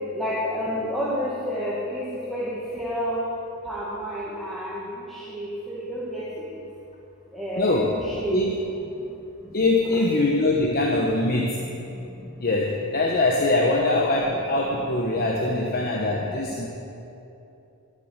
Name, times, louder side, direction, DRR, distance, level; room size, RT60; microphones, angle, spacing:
voice 1, 0.1-3.2 3.7-4.8 5.3-6.2 7.3-8.4, equal, ahead, -9 dB, 1.9 m, -30 dB
voice 2, 7.6-7.9 8.3-8.5 9.5-11.7 12.4-16.7, left 2 dB, 45° left, -1 dB, 1.0 m, -23 dB
13.0 x 7.5 x 8.0 m, 2.8 s
head